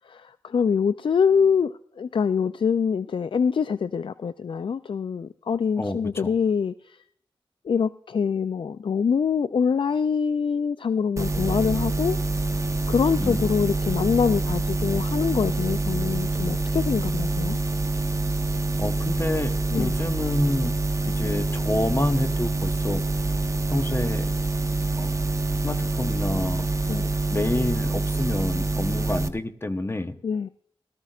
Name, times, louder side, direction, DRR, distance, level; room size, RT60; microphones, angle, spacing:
voice 1, 0.1-7.0 7.6-12.2 12.9-17.6 19.7-19.9 26.9-27.1 30.2-30.5, left 6 dB, 65° left, 14 dB, 0.4 m, -24 dB
voice 2, 5.8-6.3 13.1-13.4 18.8-20.7 21.1-23.0 23.7-24.3 25.0-25.2 25.6-30.2, left 1 dB, 25° left, 9 dB, 1.0 m, -28 dB
sound 1, 11.2-29.3, right 2 dB, 35° right, 0.8 m, -26 dB
18.0 x 13.5 x 2.4 m, 0.63 s
cardioid pair, 50°, 9 cm